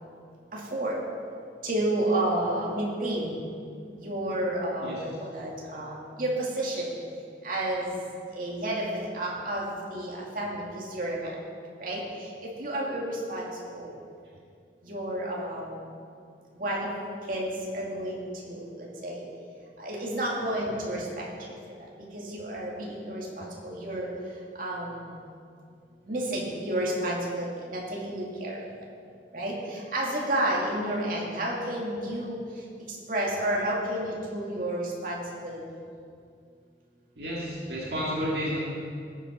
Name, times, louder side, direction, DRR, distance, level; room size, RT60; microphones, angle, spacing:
voice 1, 0.5-0.9 1.6-3.4 4.0-6.9 7.4-7.9 8.3-11.3 11.8-12.0 12.6-13.5 13.7-13.9 14.9-15.7 16.6-16.9 17.3-19.2 19.8-21.2 22.1-24.1 24.6-25.2 26.1-28.6 29.3-32.4 32.9-35.6, right 1 dB, 50° right, -4 dB, 2.5 m, -31 dB
voice 2, 21.4-21.7 37.2-38.6, equal, 65° right, -5 dB, 2.0 m, -32 dB
18.5 x 7.4 x 5.3 m, 2.3 s
head